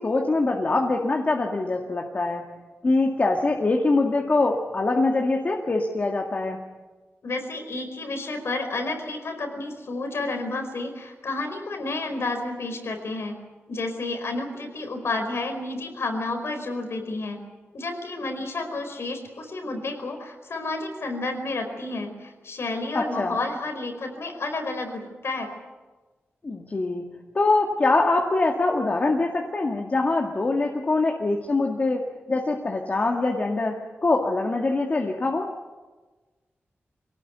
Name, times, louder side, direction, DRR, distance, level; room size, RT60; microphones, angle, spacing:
voice 1, 0.0-2.4 2.8-6.6 22.9-23.4 26.4-27.0 27.3-35.5, left 3 dB, 40° left, 1 dB, 2.0 m, -23 dB
voice 2, 7.2-13.4 13.7-17.4 17.7-25.5, left 2 dB, 75° left, 5 dB, 4.8 m, -31 dB
25.0 x 18.0 x 9.5 m, 1.3 s
wide cardioid pair, 140°, 4 cm